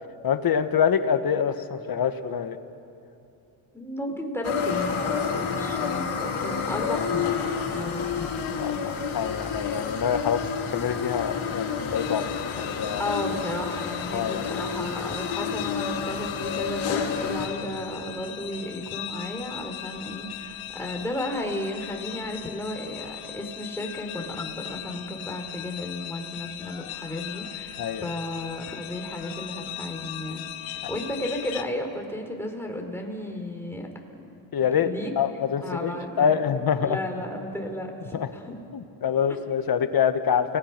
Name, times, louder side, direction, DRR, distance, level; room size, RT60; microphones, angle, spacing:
voice 1, 0.2-2.6 7.7-7.9 8.6-13.1 14.1-14.4 27.8-28.1 34.5-34.9 35.2-37.0 38.1-38.3 38.7-40.6, left 7 dB, 45° left, 9 dB, 1.5 m, -26 dB
voice 2, 3.7-7.4 7.7-8.4 13.0-33.9 34.1-34.3 34.6-35.1 35.6-36.4 36.8-38.6 39.3-39.4, left 1 dB, 5° left, 2 dB, 4.1 m, -34 dB
sound 1, 4.4-17.5, left 6 dB, 70° left, 3.3 m, -29 dB
sound 2, 11.9-31.6, left 12 dB, 90° left, 1.2 m, -39 dB
30.0 x 19.0 x 6.0 m, 2.7 s
cardioid pair, 85°, 49 cm